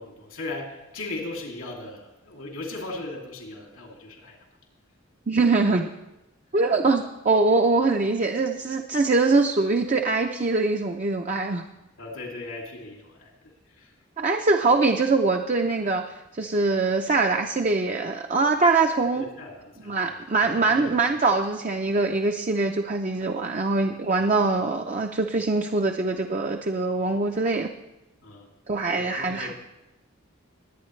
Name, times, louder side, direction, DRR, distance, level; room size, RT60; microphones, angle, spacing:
voice 1, 0.0-4.4 12.0-13.3 13.7-14.0 19.1-21.1 28.2-28.5 28.9-29.5, left 2 dB, 85° left, 0 dB, 2.7 m, -38 dB
voice 2, 5.3-5.9 6.5-11.6 14.2-19.2 19.9-27.7 28.7-29.5, right 3 dB, 35° right, 3 dB, 0.5 m, -23 dB
21.5 x 9.0 x 3.2 m, 0.97 s
head